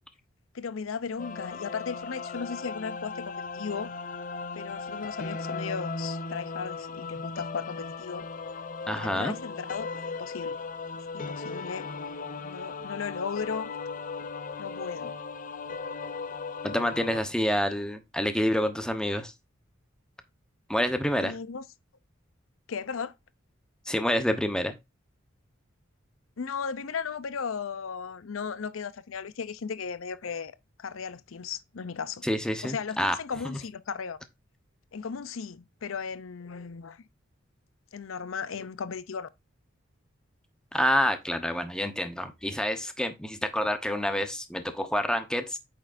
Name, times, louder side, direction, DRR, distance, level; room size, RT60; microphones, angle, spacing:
voice 1, 0.5-3.9 4.5-8.2 8.9-9.9 10.2-10.6 11.1-11.9 12.4-13.7 14.6-15.2 21.2-21.6 22.7-23.1 26.4-32.3 32.6-34.2 34.9-37.0 37.9-39.3, left 6 dB, 90° left, 0.6 m, -36 dB
sound 1, 1.2-17.2, left 4 dB, 45° left, 0.7 m, -37 dB
voice 2, 8.9-9.4 16.6-19.3 20.7-21.4 23.9-24.8 32.2-33.2 33.4-33.6 40.7-45.6, equal, 5° left, 0.9 m, -28 dB
8.6 x 6.3 x 2.6 m
head